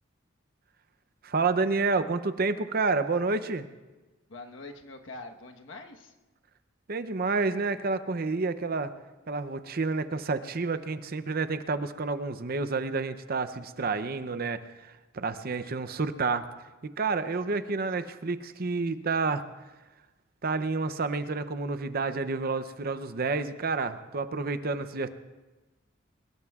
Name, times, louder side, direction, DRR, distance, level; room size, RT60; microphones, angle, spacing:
voice 1, 1.2-3.7 6.9-8.9 9.3-16.5 17.0-19.4 20.4-25.1, right 4 dB, 50° right, 11 dB, 0.6 m, -29 dB
voice 2, 4.3-6.1 17.2-17.9, left 2 dB, 70° left, 3 dB, 1.3 m, -45 dB
23.5 x 21.0 x 2.4 m, 1.2 s
head